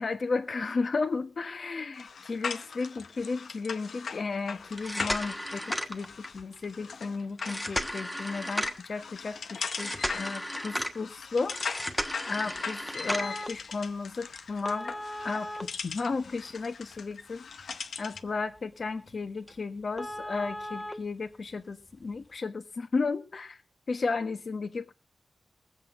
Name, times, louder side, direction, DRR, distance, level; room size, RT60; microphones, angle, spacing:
voice 1, 0.0-11.6 12.3-14.9 15.2-17.4 18.0-23.6 23.9-24.9, left 4 dB, 50° left, 1.3 m, -34 dB
sound 1, 1.9-18.3, left 5 dB, 80° left, 0.7 m, -40 dB
sound 2, 4.7-6.4 7.4-8.9 9.7-11.0 11.5-13.5 14.7-16.5 16.9-17.0 17.6-17.7 18.1-18.3 18.6-18.7 19.1-19.2 19.5-19.6 20.0-20.9 22.0-22.1, equal, 5° left, 1.2 m, -34 dB
21.5 x 8.1 x 3.8 m
wide cardioid pair, 140°, 0 cm